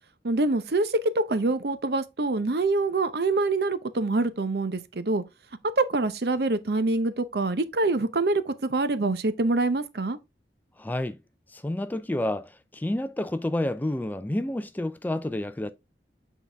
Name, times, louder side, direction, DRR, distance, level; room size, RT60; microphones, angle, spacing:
voice 1, 0.2-5.2 5.8-10.2, right 2 dB, 60° right, 0.7 m, -25 dB
voice 2, 10.8-11.2 11.5-15.7, left 1 dB, 10° left, 0.3 m, -29 dB
8.2 x 4.0 x 3.3 m
head